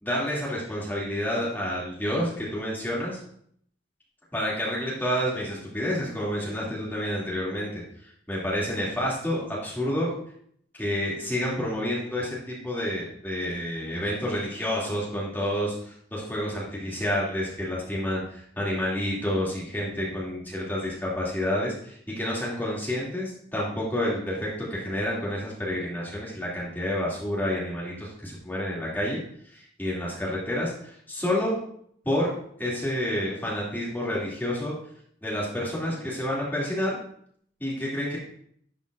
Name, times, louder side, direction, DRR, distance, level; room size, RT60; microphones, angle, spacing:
voice 1, 0.0-3.2 4.3-10.1 10.7-31.6 32.0-32.3 32.6-34.7 35.2-37.0 37.6-38.2, equal, 10° left, -6 dB, 2.3 m, -29 dB
11.0 x 7.3 x 2.4 m, 0.65 s
head